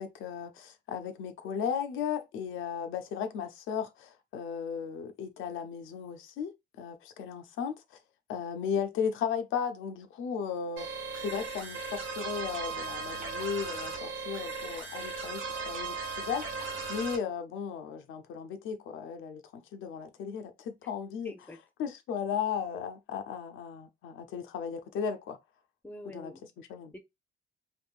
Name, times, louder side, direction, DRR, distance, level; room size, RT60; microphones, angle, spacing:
voice 1, 0.0-8.0 8.3-10.9 11.2-25.4 26.0-26.3 26.6-26.9, left 7 dB, 85° left, 0.6 m, -36 dB
sound 1, 10.8-17.2, right 4 dB, 85° right, 1.4 m, -37 dB
voice 2, 21.2-21.6 25.8-26.5 26.9-27.0, left 1 dB, 10° left, 0.6 m, -46 dB
3.5 x 2.6 x 2.4 m
cardioid pair, 90°, 20 cm